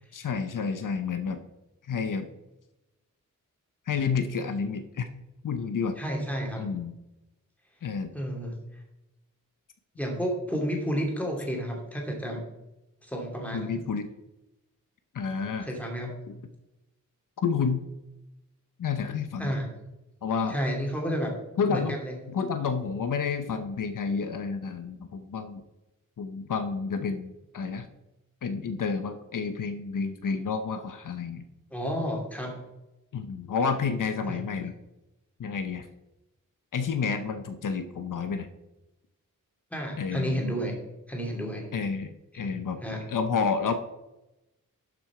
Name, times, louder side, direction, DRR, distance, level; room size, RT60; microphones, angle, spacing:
voice 1, 0.1-1.4 1.9-2.3 3.9-5.1 5.4-6.0 6.6-6.9 7.8-8.1 13.5-14.1 15.1-15.7 17.4-17.9 18.8-19.6 20.2-20.6 21.6-22.0 22.3-25.6 26.2-27.9 28.4-31.4 33.1-34.7 35.4-35.9 36.7-38.5 40.0-40.4 41.7-42.8 43.1-43.7, left 5 dB, 70° left, 8 dB, 0.8 m, -30 dB
voice 2, 6.0-6.7 8.1-8.5 10.0-12.4 13.0-13.8 15.6-16.1 19.4-19.7 20.5-21.3 21.7-22.2 31.7-32.5 34.3-34.4 39.7-40.7 41.1-41.7 42.3-42.5 42.8-43.1, equal, 5° left, 0 dB, 2.7 m, -31 dB
12.0 x 6.2 x 4.9 m, 0.96 s
wide cardioid pair, 125°, 33 cm